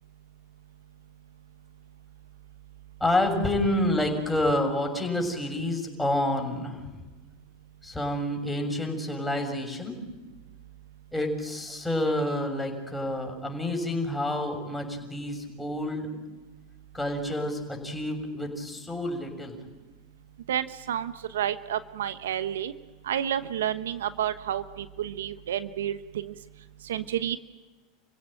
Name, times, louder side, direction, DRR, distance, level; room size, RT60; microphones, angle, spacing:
voice 1, 3.0-6.8 7.8-10.0 11.1-16.1 16.9-19.6, left 1 dB, 5° left, 2 dB, 6.8 m, -28 dB
voice 2, 20.5-22.7 23.1-26.3 26.9-27.4, right 10 dB, 80° right, 12 dB, 1.0 m, -30 dB
29.5 x 16.5 x 9.1 m, 1.2 s
hypercardioid pair, 90°, 0 cm